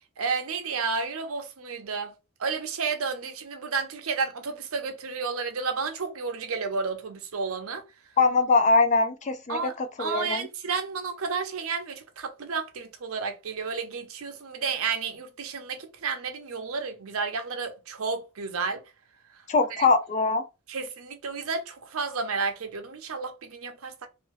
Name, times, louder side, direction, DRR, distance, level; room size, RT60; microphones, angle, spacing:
voice 1, 0.2-2.1 2.4-7.8 9.5-18.8 19.7-19.9 20.7-24.1, right 5 dB, 80° right, 0.7 m, -31 dB
voice 2, 8.2-10.5 19.5-20.4, left 3 dB, 35° left, 0.4 m, -22 dB
2.7 x 2.6 x 3.1 m
head